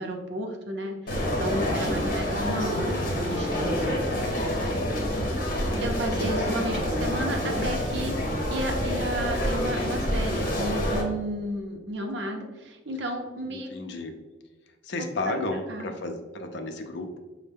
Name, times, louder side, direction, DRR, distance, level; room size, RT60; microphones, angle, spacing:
voice 1, 0.0-4.0 5.8-13.7 15.0-15.9, right 1 dB, 65° right, 3 dB, 0.6 m, -33 dB
sound 1, 1.1-11.0, equal, 50° left, 0.9 m, -27 dB
voice 2, 1.6-2.4 13.5-14.2 14.8-17.2, left 2 dB, 65° left, 5 dB, 0.5 m, -34 dB
5.3 x 2.1 x 3.4 m, 1.2 s
head